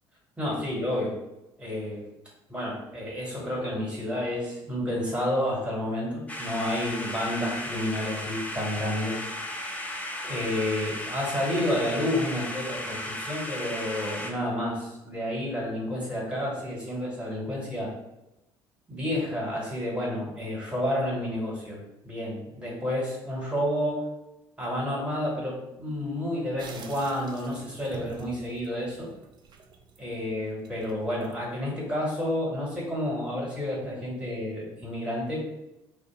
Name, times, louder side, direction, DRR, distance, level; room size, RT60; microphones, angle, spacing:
voice 1, 0.4-1.1 1.6-2.0 2.5-9.3 10.2-17.9 18.9-24.0 24.6-29.1 30.0-35.4, left 1 dB, 10° right, -3 dB, 1.4 m, -30 dB
sound 1, 6.3-14.3, left 1 dB, 10° left, 0.5 m, -35 dB
sound 2, 26.6-31.7, right 4 dB, 35° right, 0.5 m, -48 dB
2.6 x 2.4 x 3.7 m, 0.93 s
figure-of-eight pair, 55°, 13 cm